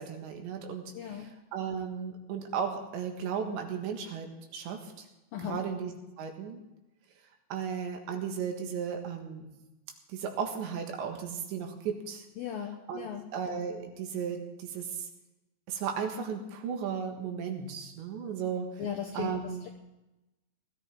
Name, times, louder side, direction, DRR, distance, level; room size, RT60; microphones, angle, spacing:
voice 1, 0.0-5.1 5.4-6.6 7.5-9.5 10.1-12.3 12.9-15.1 15.7-18.7 19.1-19.7, right 7 dB, 75° right, 3 dB, 3.8 m, -35 dB
voice 2, 0.9-1.3 5.3-5.6 12.4-13.2 18.8-19.7, left 8 dB, 85° left, 2 dB, 2.0 m, -37 dB
19.0 x 13.0 x 3.7 m, 0.97 s
omnidirectional pair, 5.4 m